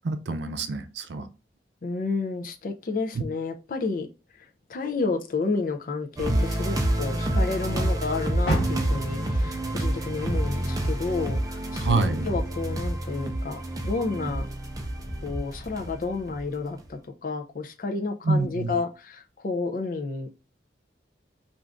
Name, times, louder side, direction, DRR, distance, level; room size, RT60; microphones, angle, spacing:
voice 1, 0.0-1.3 11.8-12.3 18.2-18.7, right 3 dB, 85° right, 9 dB, 0.5 m, -26 dB
voice 2, 1.8-4.1 4.4-12.0 12.2-14.5 15.2-20.3, left 3 dB, 50° left, 5 dB, 0.5 m, -31 dB
sound 1, 6.2-16.4 16.8-16.9, right 1 dB, 20° right, 0.5 m, -28 dB
Waves surf, 8.1-15.7, equal, 10° left, 1.0 m, -48 dB
Car, 8.4-11.7 12.1-13.5 13.9-14.0 14.6-14.7, right 1 dB, 75° left, 1.1 m, -33 dB
2.5 x 2.4 x 3.3 m, 0.30 s
head